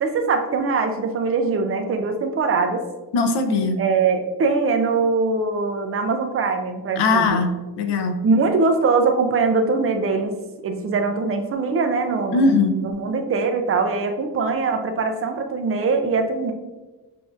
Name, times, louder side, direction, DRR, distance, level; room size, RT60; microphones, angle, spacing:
voice 1, 0.0-2.8 3.8-7.4 8.2-10.3 10.6-16.5, right 4 dB, 35° right, 6 dB, 0.4 m, -22 dB
voice 2, 3.1-3.8 7.0-8.2 12.3-12.8, left 3 dB, 85° left, 6 dB, 0.7 m, -20 dB
6.7 x 2.6 x 2.4 m, 1.2 s
wide cardioid pair, 165°, 40 cm